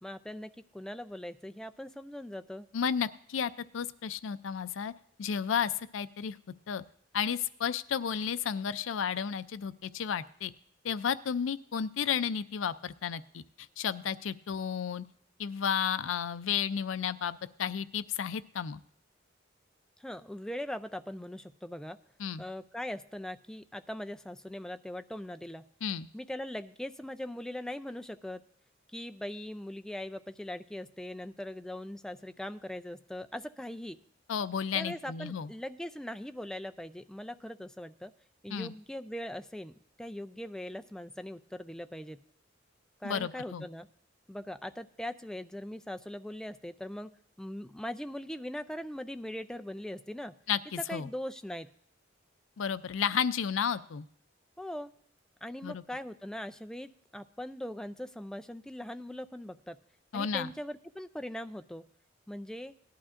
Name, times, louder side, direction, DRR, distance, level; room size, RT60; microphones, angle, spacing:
voice 1, 0.0-2.7 20.0-22.0 22.4-25.7 26.1-28.4 28.9-34.0 34.7-38.1 38.4-42.2 43.0-43.9 44.3-47.1 47.4-50.3 50.9-51.7 54.6-54.9 55.4-59.8 60.1-61.8 62.3-62.7, left 1 dB, 5° left, 9 dB, 0.3 m, -40 dB
voice 2, 2.7-4.9 5.2-6.4 6.7-6.8 7.1-10.5 10.8-13.4 13.8-15.0 15.4-18.8 22.2-22.4 25.8-26.1 34.3-35.5 38.5-38.7 43.0-43.7 50.5-51.1 52.6-54.1 55.6-55.8 60.1-60.5, left 7 dB, 85° left, 14 dB, 0.4 m, -32 dB
18.0 x 11.5 x 2.5 m, 0.64 s
head